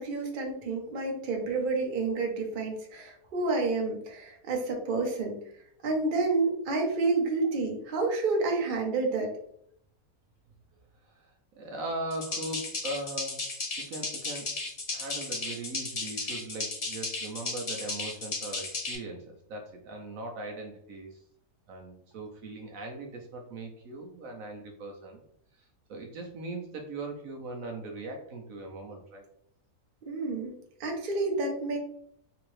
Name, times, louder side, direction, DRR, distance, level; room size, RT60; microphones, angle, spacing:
voice 1, 0.0-5.3 5.8-9.3 30.1-30.5 30.8-31.8, right 3 dB, 45° right, 1 dB, 0.7 m, -29 dB
voice 2, 11.0-13.5 13.8-14.5 14.9-21.2 21.7-25.2 25.6-29.2, right 2 dB, 65° right, 2 dB, 1.0 m, -40 dB
sound 1, 12.1-19.0, left 3 dB, 45° left, 0.4 m, -35 dB
3.4 x 2.9 x 3.1 m, 0.69 s
omnidirectional pair, 1.7 m